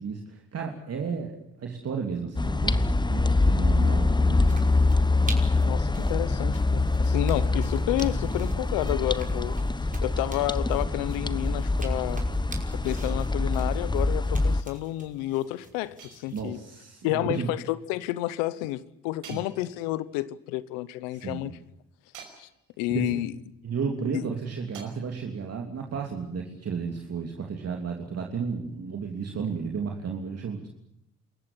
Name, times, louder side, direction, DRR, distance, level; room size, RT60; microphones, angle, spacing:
voice 1, 0.0-4.7 16.3-17.5 19.3-19.4 21.1-21.5 22.9-23.1 23.6-30.7, right 5 dB, 50° right, 3.0 m, -33 dB
sound 1, 2.4-14.6, left 2 dB, 15° left, 1.1 m, -25 dB
sound 2, 4.4-16.5, right 3 dB, 25° right, 5.4 m, -45 dB
voice 2, 5.6-9.6 10.0-12.2 12.7-16.6 17.0-21.5 22.4-22.5 22.8-23.3 24.1-24.2, left 16 dB, 90° left, 1.0 m, -30 dB
sound 3, 13.0-13.8 16.0-16.8 19.2-20.2 22.1-22.9 24.7-24.8, right 7 dB, 75° right, 5.6 m, -50 dB
27.5 x 14.5 x 9.8 m
supercardioid pair, 55°, 31 cm